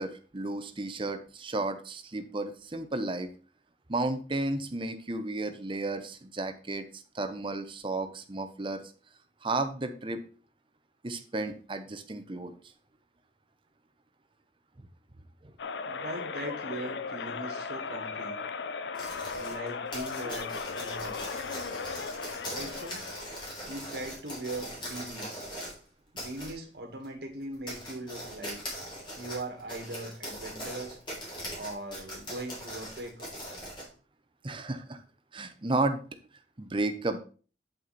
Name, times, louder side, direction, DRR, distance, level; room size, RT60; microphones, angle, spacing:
voice 1, 0.0-3.3 3.9-8.8 9.4-10.2 11.0-12.5 15.4-15.5 34.4-35.0 35.3-36.0 36.6-37.2, right 2 dB, 30° right, 8 dB, 0.8 m, -33 dB
sound 1, 15.6-23.6, left 5 dB, 80° left, 0.5 m, -37 dB
voice 2, 15.8-18.4 19.3-21.3 22.4-23.0 23.7-25.4 26.1-28.6 29.1-31.0 31.5-33.3, right 2 dB, 65° right, 3 dB, 2.0 m, -40 dB
sound 2, 18.9-25.8 26.2-26.5 27.0-27.1 27.5-33.9, equal, 30° left, 3.6 m, -40 dB
8.9 x 5.6 x 4.2 m, 0.38 s
head